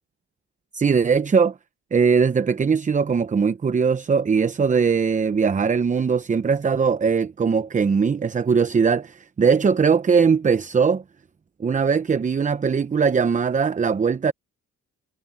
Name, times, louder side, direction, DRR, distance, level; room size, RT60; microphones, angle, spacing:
voice 1, 0.7-1.5 1.9-11.0 11.6-14.3, right 5 dB, 25° right, 0.7 m, -20 dB
cardioid pair, 90°, 30 cm